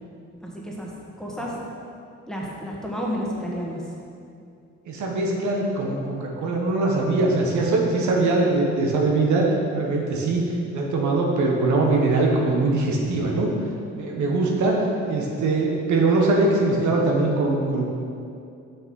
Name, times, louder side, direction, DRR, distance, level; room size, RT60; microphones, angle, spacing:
voice 1, 0.4-0.9 1.2-1.6 2.3-3.8, equal, ahead, -4 dB, 1.6 m, -31 dB
voice 2, 4.9-9.4 9.7-13.5 13.9-17.9, right 2 dB, 70° right, -1 dB, 1.5 m, -22 dB
6.6 x 6.3 x 5.4 m, 2.5 s
cardioid pair, 90°, 30 cm